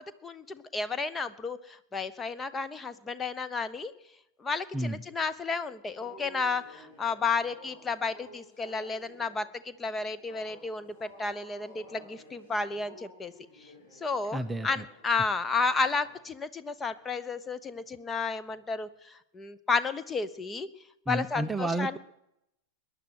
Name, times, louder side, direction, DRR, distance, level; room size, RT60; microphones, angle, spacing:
voice 1, 0.2-3.9 4.4-13.3 14.0-20.7 21.1-22.0, left 4 dB, 15° left, 13 dB, 0.9 m, -32 dB
sound 1, 5.9-16.3 16.8-17.1 17.7-18.0 18.4-18.7, left 1 dB, 55° left, 7.4 m, -53 dB
voice 2, 14.3-14.8 21.1-22.0, right 2 dB, 10° right, 9 dB, 0.6 m, -31 dB
21.5 x 10.5 x 6.3 m, 0.82 s
figure-of-eight pair, 90°, 0 cm